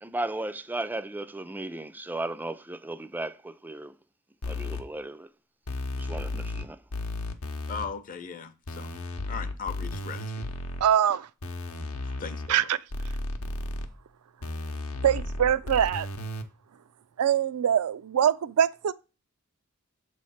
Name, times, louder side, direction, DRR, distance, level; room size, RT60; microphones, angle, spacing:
voice 1, 0.0-3.9 4.5-5.3 6.0-6.8, right 2 dB, 10° right, 0.3 m, -35 dB
sound 1, 4.4-4.8 5.7-6.6 6.9-7.9 8.7-10.8 11.4-12.5 12.9-13.9 14.4-16.4, left 2 dB, 85° left, 0.8 m, -34 dB
voice 2, 7.7-8.9 9.3-10.3 12.2-12.7, left 5 dB, 40° left, 0.6 m, -37 dB
voice 3, 10.8-11.3 12.5-12.8 15.0-16.1 17.2-18.9, right 9 dB, 85° right, 0.4 m, -23 dB
7.1 x 3.2 x 5.6 m
head